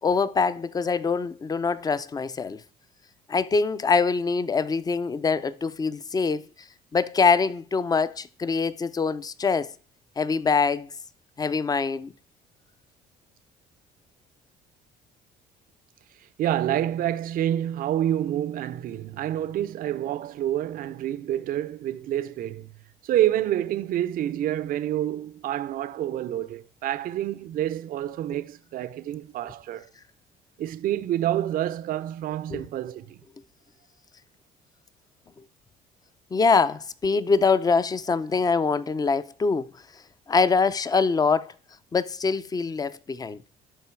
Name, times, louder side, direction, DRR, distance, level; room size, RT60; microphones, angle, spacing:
voice 1, 0.0-2.6 3.3-6.5 6.9-9.7 10.2-10.9 11.4-12.1 32.5-32.6 36.3-39.7 40.3-41.5 41.9-43.4, left 4 dB, 20° left, 0.5 m, -24 dB
voice 2, 16.4-22.7 23.0-29.9 30.6-33.2, right 12 dB, 55° right, 0.5 m, -28 dB
11.5 x 4.0 x 4.5 m
cardioid pair, 110°, 17 cm